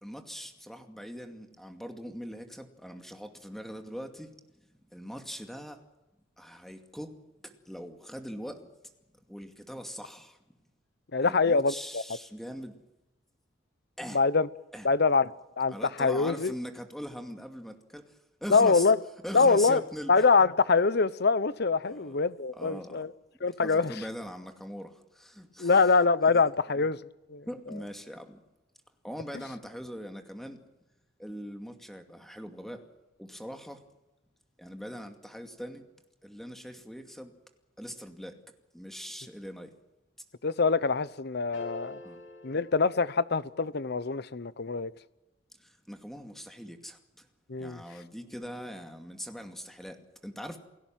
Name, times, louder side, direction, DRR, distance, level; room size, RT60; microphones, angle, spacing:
voice 1, 0.0-4.3 4.9-5.8 6.4-7.1 7.4-8.7 9.3-10.4 11.2-12.7 14.0-14.2 14.7-14.9 15.7-18.9 19.2-20.1 21.8-22.2 22.5-23.1 23.6-25.8 26.3-26.4 27.5-28.4 29.0-30.6 31.2-32.9 33.2-33.8 34.6-35.8 36.2-37.3 37.8-38.4 38.7-39.7 42.0-42.2 45.6-47.3 47.6-50.6, equal, ahead, 2.3 m, -41 dB
voice 2, 11.1-12.0 14.1-14.5 14.8-15.3 15.6-16.5 18.5-19.0 19.3-19.8 20.1-23.1 23.4-23.9 25.6-27.0 27.3-27.4 40.4-42.0 42.4-44.9 47.5-47.8, left 4 dB, 55° left, 0.9 m, -24 dB
sound 1, 41.5-43.8, left 1 dB, 80° left, 7.8 m, -47 dB
29.0 x 17.0 x 7.5 m
head